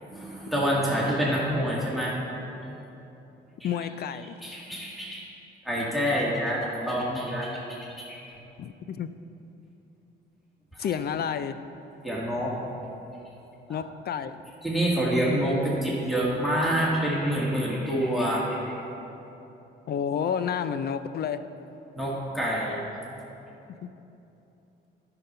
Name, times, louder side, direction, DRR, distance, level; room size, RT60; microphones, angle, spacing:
voice 1, 0.1-2.2 4.4-5.2 5.6-8.2 10.7-10.9 12.0-12.5 13.7-13.8 14.6-18.8 21.9-22.8, equal, ahead, -6 dB, 1.9 m, -27 dB
voice 2, 3.6-4.4 8.6-9.1 10.8-11.6 13.7-14.4 19.9-21.4 23.8-23.9, left 8 dB, 55° left, 12 dB, 0.5 m, -30 dB
10.5 x 6.0 x 5.5 m, 3.0 s
cardioid pair, 90°, 20 cm